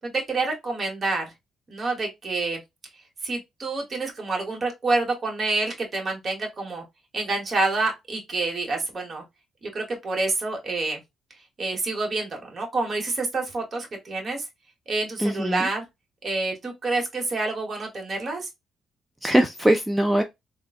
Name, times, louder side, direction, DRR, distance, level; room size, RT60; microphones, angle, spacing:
voice 1, 0.0-1.3 1.7-2.6 3.2-6.8 7.1-9.2 9.6-11.0 11.6-14.4 14.9-15.8 16.2-18.5, right 3 dB, 40° right, 1.2 m, -28 dB
voice 2, 15.2-15.7 19.2-20.2, right 1 dB, 5° right, 0.4 m, -21 dB
3.7 x 2.2 x 2.4 m
cardioid pair, 90°, 0 cm